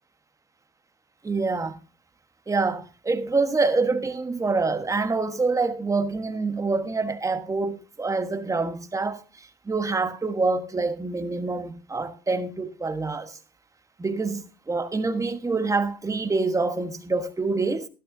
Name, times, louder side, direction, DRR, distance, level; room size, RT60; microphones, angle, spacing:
voice 1, 1.2-1.8 2.5-13.4 14.0-17.9, right 3 dB, 20° right, 1.3 m, -26 dB
13.0 x 12.0 x 2.7 m
cardioid pair, 110°, 17 cm